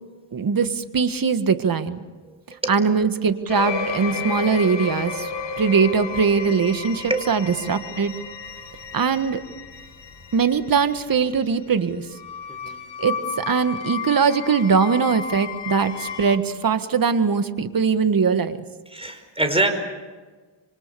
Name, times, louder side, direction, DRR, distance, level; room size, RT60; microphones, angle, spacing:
voice 1, 0.3-2.0 2.7-5.3 5.6-8.1 8.9-9.4 10.3-12.1 13.0-18.6, right 5 dB, 45° right, 10 dB, 1.6 m, -21 dB
sound 1, 3.5-16.4, left 5 dB, 55° left, 2.9 m, -33 dB
voice 2, 18.9-19.7, right 2 dB, 10° right, 7 dB, 5.0 m, -24 dB
28.0 x 24.5 x 6.9 m, 1.4 s
cardioid pair, 95°, 49 cm